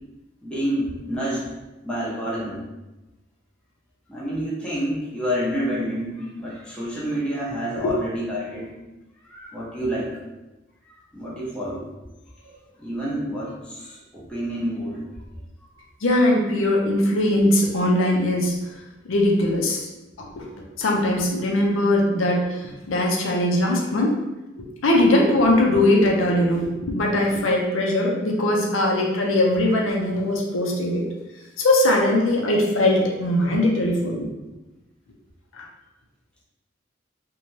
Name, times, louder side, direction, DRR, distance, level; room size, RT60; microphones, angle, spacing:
voice 1, 0.4-1.5 1.8-2.6 4.1-8.7 9.3-10.1 11.1-11.9 12.4-15.0, equal, 5° left, -7 dB, 0.7 m, -28 dB
voice 2, 16.0-18.6 19.1-19.9 20.4-24.1 24.6-31.0 31.6-34.3 35.5-35.6, left 1 dB, 80° left, 0 dB, 0.5 m, -21 dB
2.6 x 2.2 x 3.0 m, 1.0 s
head